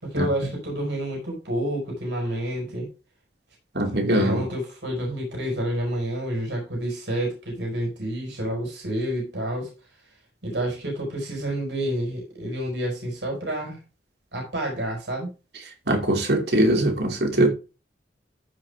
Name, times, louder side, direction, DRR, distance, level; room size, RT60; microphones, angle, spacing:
voice 1, 0.0-2.9 4.1-9.7 10.4-13.8 14.3-15.3, right 1 dB, 85° right, 5.1 m, -29 dB
voice 2, 3.8-4.4 15.9-17.5, right 1 dB, 65° right, 2.7 m, -21 dB
14.5 x 5.6 x 3.5 m
head